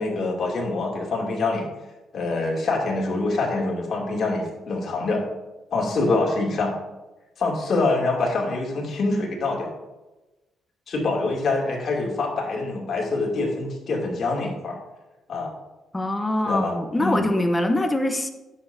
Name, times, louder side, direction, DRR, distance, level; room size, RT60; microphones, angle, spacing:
voice 1, 0.0-1.6 2.1-5.2 5.7-6.7 7.4-9.7 10.9-14.8 15.3-15.5 16.4-17.2, left 3 dB, 55° left, -2 dB, 2.6 m, -25 dB
voice 2, 15.9-18.3, left 1 dB, 15° left, 7 dB, 0.9 m, -23 dB
10.5 x 7.1 x 2.7 m, 1.1 s
cardioid pair, 90°, 0 cm